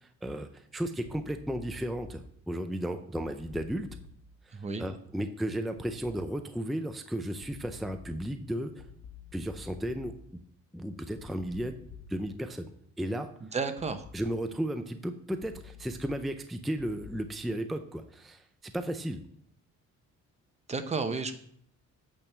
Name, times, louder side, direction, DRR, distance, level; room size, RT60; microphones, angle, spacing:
voice 1, 0.0-3.9 4.5-8.9 9.3-10.1 10.7-12.7 13.0-13.3 14.1-19.2, right 1 dB, ahead, 7 dB, 0.4 m, -34 dB
sound 1, 1.0-2.1 3.2-4.1 5.8-6.1 7.4-8.1 8.8-10.1 11.2-12.1 13.8-14.1 15.4-16.1 16.8-17.2, left 5 dB, 65° left, 1.2 m, -49 dB
voice 2, 4.5-4.8 13.5-14.1 20.7-21.3, right 4 dB, 20° right, 8 dB, 0.8 m, -32 dB
8.5 x 3.5 x 6.6 m, 0.65 s
cardioid pair, 130°, 30 cm